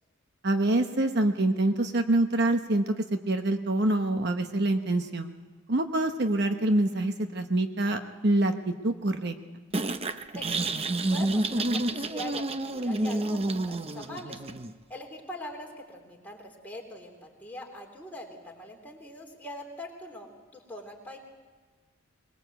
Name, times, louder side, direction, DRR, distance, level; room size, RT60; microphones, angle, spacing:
voice 1, 0.4-5.3 5.7-9.3, right 1 dB, 50° right, 7 dB, 1.0 m, -26 dB
sound 1, 9.7-14.7, right 2 dB, 30° right, 0.7 m, -29 dB
voice 2, 10.3-14.4 14.9-21.2, left 1 dB, 10° left, -1 dB, 3.5 m, -42 dB
22.5 x 21.0 x 8.0 m, 1.5 s
head